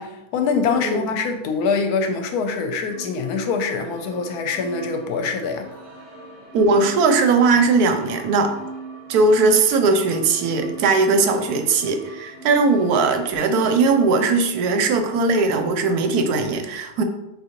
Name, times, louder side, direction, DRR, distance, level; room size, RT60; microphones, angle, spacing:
voice 1, 0.0-5.7, left 5 dB, 80° left, 1.1 m, -24 dB
sound 1, 2.9-14.3, right 3 dB, 50° right, 1.2 m, -41 dB
voice 2, 6.5-8.5 9.1-17.0, right 3 dB, 75° right, 1.1 m, -19 dB
6.3 x 2.7 x 2.9 m
omnidirectional pair, 1.7 m